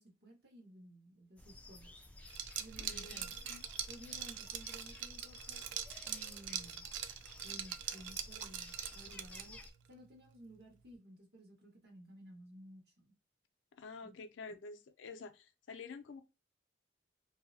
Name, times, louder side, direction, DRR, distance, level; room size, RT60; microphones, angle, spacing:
voice 1, 0.0-1.9 2.6-3.4 3.9-5.7 6.1-6.9 7.4-9.6 9.9-13.1 14.0-14.1, right 1 dB, 60° right, 1.1 m, -56 dB
sound 1, 1.4-9.7, left 2 dB, 10° left, 0.3 m, -53 dB
Liquid, 2.3-9.7, right 9 dB, 80° right, 0.3 m, -43 dB
voice 2, 2.8-3.6 13.8-16.2, left 4 dB, 80° left, 0.4 m, -49 dB
2.6 x 2.0 x 2.6 m
head